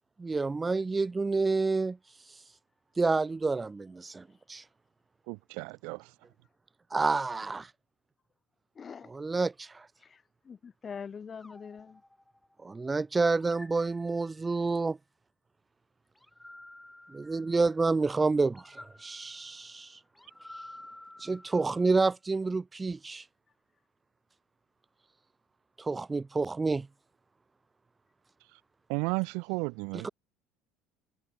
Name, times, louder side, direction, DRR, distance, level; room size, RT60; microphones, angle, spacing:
voice 1, 0.2-2.0 2.3-2.4 3.0-4.2 4.5-4.6 6.9-7.7 9.1-9.9 12.6-15.0 17.1-20.0 21.2-23.2 25.8-26.9 29.9-30.1, right 3 dB, 15° right, 0.4 m, -29 dB
voice 2, 5.3-6.1 28.9-30.1, right 33 dB, 80° right, 0.4 m, -33 dB
voice 3, 8.7-9.1 10.0-12.0, left 6 dB, 30° left, 3.8 m, -44 dB
sound 1, 11.4-12.8 13.4-14.7 16.2-17.9 18.5-22.1, left 1 dB, 5° left, 6.7 m, -52 dB
cardioid pair, 125°, 0 cm